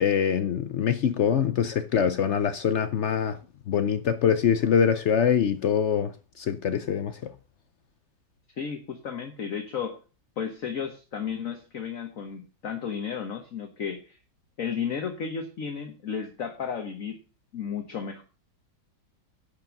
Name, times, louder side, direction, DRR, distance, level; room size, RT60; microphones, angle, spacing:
voice 1, 0.0-3.4 3.7-6.1 6.4-7.1, left 8 dB, 70° left, 0.6 m, -24 dB
voice 2, 8.6-10.0 10.4-14.2 14.6-17.2 17.5-18.2, left 7 dB, 50° left, 1.4 m, -33 dB
11.0 x 5.3 x 6.9 m
omnidirectional pair, 1.9 m